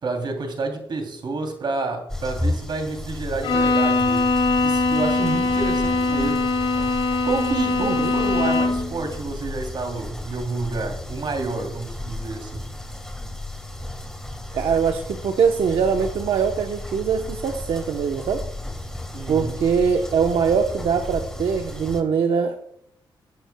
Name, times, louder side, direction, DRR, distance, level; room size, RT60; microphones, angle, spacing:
voice 1, 0.0-4.3 4.6-6.5 7.2-12.7 19.1-19.5, right 3 dB, 55° right, 4 dB, 3.0 m, -29 dB
sound 1, 2.1-22.0, left 1 dB, 5° left, 2.5 m, -34 dB
Bowed string instrument, 3.4-8.9, left 3 dB, 75° left, 2.2 m, -21 dB
voice 2, 7.8-8.1 14.5-18.5 19.3-22.6, right 6 dB, 75° right, 5 dB, 0.9 m, -22 dB
19.5 x 9.3 x 2.3 m, 0.72 s
cardioid pair, 75°, 9 cm